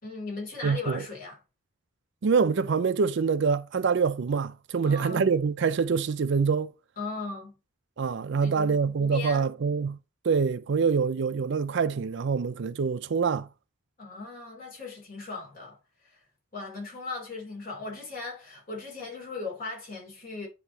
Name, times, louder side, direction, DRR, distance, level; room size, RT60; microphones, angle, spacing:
voice 1, 0.0-1.4 4.8-5.3 7.0-7.5 8.4-9.5 14.0-16.2 16.5-20.5, left 3 dB, 40° left, 3.5 m, -38 dB
voice 2, 0.6-1.0 2.2-6.7 8.0-10.0 10.2-13.5, right 5 dB, 55° right, 0.4 m, -25 dB
9.9 x 3.5 x 3.1 m
head